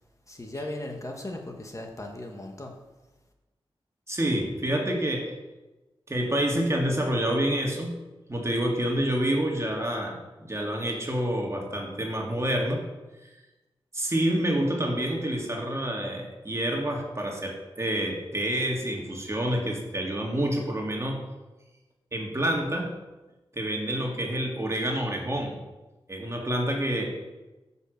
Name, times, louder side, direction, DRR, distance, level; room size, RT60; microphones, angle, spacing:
voice 1, 0.3-2.8, left 1 dB, 35° left, 2 dB, 1.3 m, -37 dB
voice 2, 4.1-5.4 6.1-8.0 8.3-12.9 13.9-21.3 22.1-23.0 23.5-25.6 26.1-27.2, right 1 dB, 30° right, 0 dB, 1.9 m, -28 dB
9.5 x 5.7 x 6.5 m, 1.1 s
wide cardioid pair, 85°, 9 cm